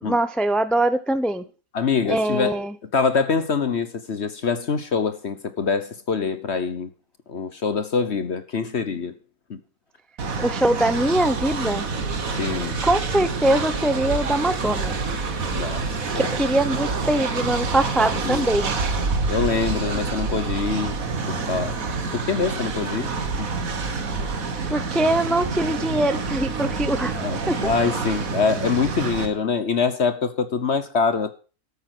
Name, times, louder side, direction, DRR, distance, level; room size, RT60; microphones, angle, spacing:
voice 1, 0.0-1.4 2.1-2.7 10.4-11.8 12.8-15.0 16.1-18.7 24.7-27.2 27.5-27.6, right 1 dB, ahead, 0.3 m, -22 dB
voice 2, 1.7-6.9 7.3-9.1 9.5-9.6 12.4-12.7 15.5-16.3 18.1-18.5 19.3-21.0 21.3-21.8 22.1-23.1 23.4-23.5 27.1-31.3, left 5 dB, 50° left, 1.2 m, -25 dB
Train, 10.2-29.3, right 4 dB, 65° right, 1.9 m, -27 dB
12.5 x 9.0 x 6.1 m
omnidirectional pair, 1.6 m